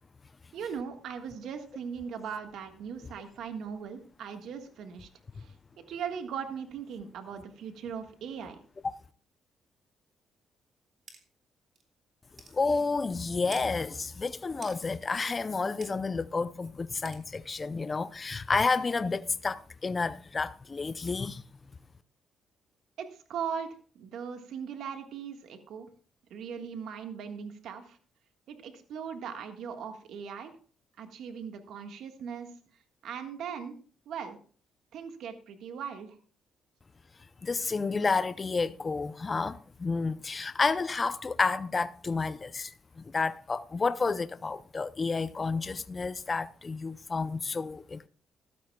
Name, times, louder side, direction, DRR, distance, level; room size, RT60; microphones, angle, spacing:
voice 1, 0.5-5.1 5.3-5.5 5.9-8.6 23.0-25.9 26.3-28.0 28.5-30.5 31.0-32.5 33.0-33.8 34.0-34.4 34.9-36.2, right 7 dB, 80° right, 1.5 m, -39 dB
sound 1, 11.1-11.2 11.8-11.9 12.4-12.6 13.5-13.7 14.6-14.8 15.8-15.9 17.0-17.2, right 4 dB, 45° right, 3.0 m, -46 dB
voice 2, 12.5-21.4 37.4-48.1, left 4 dB, 30° left, 0.5 m, -30 dB
15.5 x 12.5 x 2.3 m
cardioid pair, 90°, 0 cm